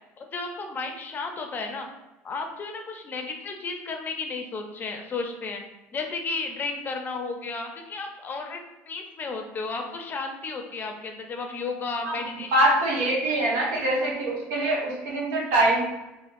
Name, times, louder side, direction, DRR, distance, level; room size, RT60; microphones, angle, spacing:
voice 1, 0.2-1.9 2.2-5.6 5.9-8.6 8.9-12.5 13.5-13.6, left 3 dB, 35° left, 4 dB, 0.5 m, -33 dB
voice 2, 12.5-15.8, right 1 dB, 75° right, -3 dB, 1.0 m, -23 dB
3.7 x 2.1 x 2.6 m, 0.99 s
supercardioid pair, 85°, 6 cm